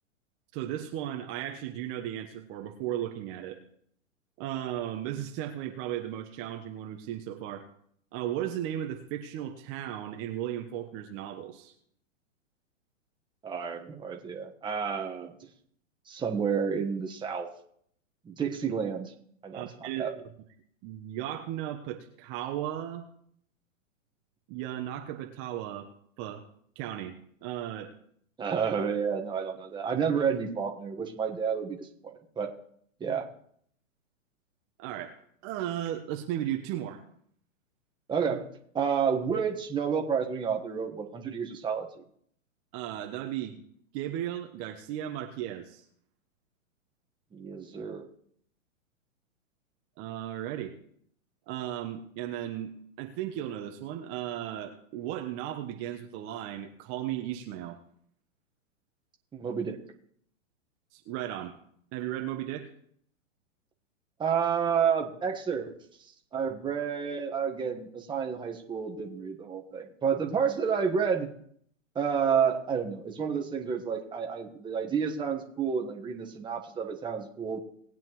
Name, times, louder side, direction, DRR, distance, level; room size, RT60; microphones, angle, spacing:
voice 1, 0.5-3.6 4.4-7.7 8.1-11.7 19.5-20.2 20.8-23.0 24.5-25.9 26.2-26.4 26.7-27.1 27.4-27.9 34.8-35.1 35.4-37.0 42.7-43.6 43.9-45.8 50.0-50.7 51.5-52.7 53.0-57.8 60.9-61.5 61.9-62.7, right 11 dB, 35° right, 4 dB, 1.1 m, -35 dB
voice 2, 13.4-15.3 16.1-17.5 18.2-19.1 19.4-20.1 28.4-32.5 33.0-33.3 38.1-38.5 38.7-41.9 47.3-48.1 59.3-59.8 64.2-65.7 66.3-71.3 71.9-77.6, right 6 dB, 10° right, 2 dB, 1.3 m, -30 dB
19.5 x 9.0 x 3.1 m, 0.66 s
hypercardioid pair, 120°, 39 cm